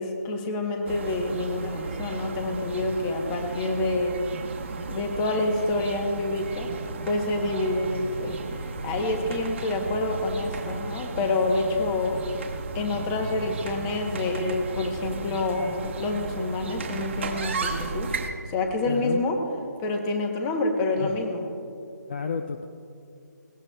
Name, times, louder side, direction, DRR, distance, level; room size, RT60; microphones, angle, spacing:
voice 1, 0.0-4.2 4.9-6.7 7.0-12.2 12.7-18.1 18.5-19.4 19.8-21.5, left 2 dB, 10° left, 4 dB, 0.8 m, -27 dB
sound 1, 0.8-18.3, right 4 dB, 40° right, 1.0 m, -34 dB
voice 2, 18.9-19.2 21.0-21.1 22.1-22.7, left 5 dB, 30° left, 7 dB, 0.4 m, -30 dB
20.5 x 17.5 x 2.2 m, 2.5 s
hypercardioid pair, 170°, 10 cm